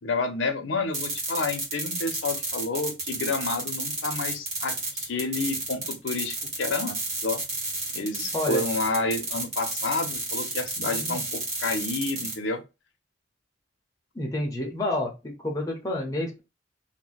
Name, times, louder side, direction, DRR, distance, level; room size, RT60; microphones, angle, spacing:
voice 1, 0.0-6.9 7.2-7.4 7.9-12.6, left 3 dB, 85° left, 6 dB, 0.6 m, -29 dB
sound 1, 0.9-12.4, right 2 dB, 35° right, 1.2 m, -31 dB
voice 2, 10.8-11.2 14.1-16.4, left 1 dB, 20° left, 0 dB, 0.6 m, -29 dB
2.6 x 2.2 x 3.9 m, 0.26 s
head